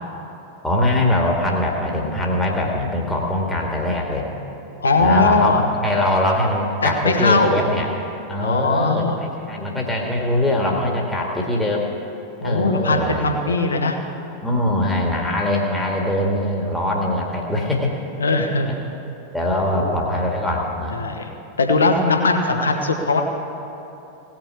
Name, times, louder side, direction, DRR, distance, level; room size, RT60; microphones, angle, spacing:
voice 1, 0.6-4.3 5.0-7.9 8.3-11.9 12.4-13.6 14.4-18.0 19.3-21.0, left 1 dB, 5° left, -2 dB, 1.9 m, -22 dB
voice 2, 4.8-5.6 6.8-7.7 8.4-9.2 12.4-14.0 18.2-18.8 19.7-19.9 20.9-21.3 21.6-23.2, left 3 dB, 70° left, 4 dB, 1.2 m, -19 dB
17.5 x 5.9 x 9.9 m, 2.9 s
figure-of-eight pair, 90°, 0 cm